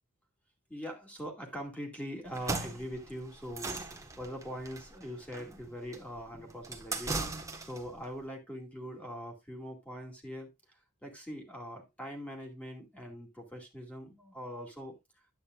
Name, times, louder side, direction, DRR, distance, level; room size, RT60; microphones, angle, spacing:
voice 1, 0.7-7.1 7.6-14.9, equal, 5° left, 2.3 m, -42 dB
sound 1, 2.3-7.9, right 3 dB, 15° right, 1.3 m, -38 dB
10.5 x 8.6 x 2.5 m
head